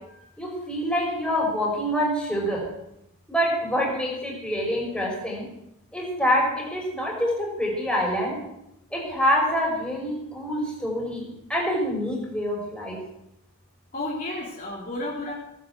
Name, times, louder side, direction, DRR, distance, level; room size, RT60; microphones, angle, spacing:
voice 1, 0.4-2.7 3.3-5.5 5.9-8.4 8.9-13.0, equal, 5° left, -2 dB, 5.2 m, -26 dB
voice 2, 13.9-15.3, left 2 dB, 40° left, -3 dB, 3.0 m, -32 dB
17.5 x 9.3 x 7.9 m, 0.84 s
head